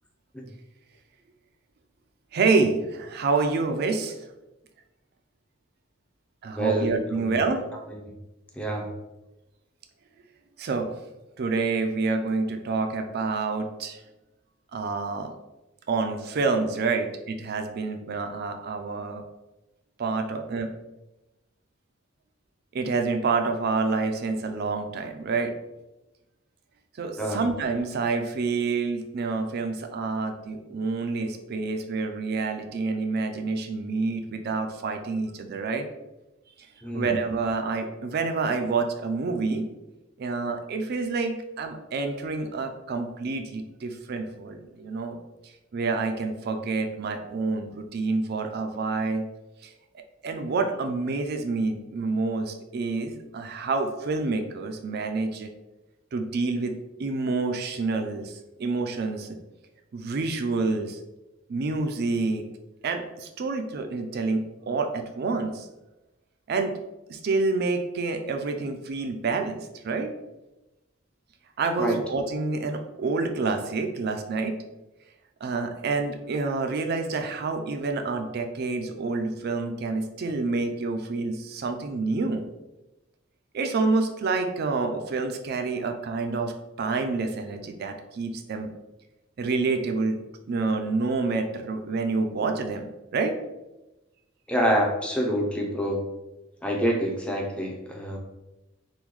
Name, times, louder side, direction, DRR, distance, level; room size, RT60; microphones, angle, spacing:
voice 1, 2.3-4.2 6.4-7.6 10.6-10.9 11.4-14.0 14.7-15.4 15.9-19.2 20.0-20.7 22.7-25.5 27.0-35.9 36.9-39.7 40.2-45.2 45.7-49.3 49.6-49.7 50.2-55.5 56.1-56.7 57.0-59.4 59.9-61.0 61.5-62.4 62.8-65.7 66.5-66.7 67.1-70.1 71.6-74.6 75.4-82.4 83.5-86.5 86.8-88.7 89.4-90.2 90.5-93.3, right 3 dB, 50° right, 6 dB, 0.4 m, -28 dB
voice 2, 6.6-7.4 7.9-8.1 8.6-8.9 27.2-27.5 36.8-37.1 71.8-72.0 94.5-96.1 96.6-98.2, equal, 5° left, 0 dB, 0.5 m, -27 dB
3.6 x 2.2 x 3.0 m, 0.99 s
head